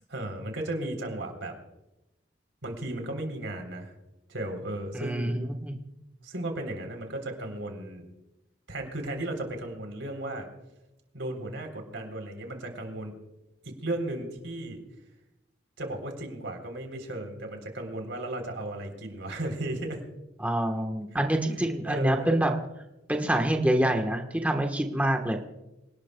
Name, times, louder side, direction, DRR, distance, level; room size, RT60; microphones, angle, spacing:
voice 1, 0.1-1.5 2.6-3.9 4.3-5.4 6.2-8.0 8.7-10.5 11.1-13.1 13.6-14.8 15.8-20.0 21.8-22.4, right 1 dB, 80° right, 4 dB, 3.5 m, -35 dB
voice 2, 4.9-5.7 20.4-22.6 23.1-25.4, right 1 dB, 10° right, 3 dB, 1.2 m, -26 dB
26.5 x 18.5 x 2.3 m, 0.96 s
head